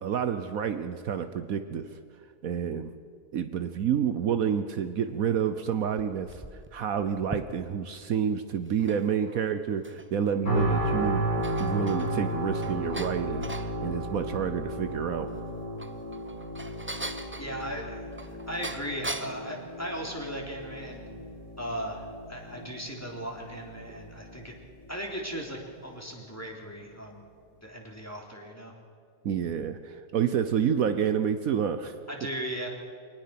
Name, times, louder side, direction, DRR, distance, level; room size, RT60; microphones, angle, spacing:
voice 1, 0.0-1.9 2.4-2.9 3.3-6.4 6.7-11.2 11.6-15.3 29.2-31.9, right 8 dB, 70° right, 9 dB, 1.2 m, -29 dB
sound 1, 5.7-7.9 8.6-10.3 10.7-10.8 11.2-13.7 15.5-19.5, right 1 dB, 15° right, 0.5 m, -41 dB
sound 2, 10.5-25.5 26.0-26.1, right 1 dB, 80° left, 6.6 m, -34 dB
voice 2, 17.4-18.0 18.5-21.0 21.6-24.5 24.9-27.2 27.6-28.7 32.1-32.7, equal, 10° left, -1 dB, 3.4 m, -37 dB
24.0 x 19.5 x 5.9 m, 2.2 s
omnidirectional pair, 1.6 m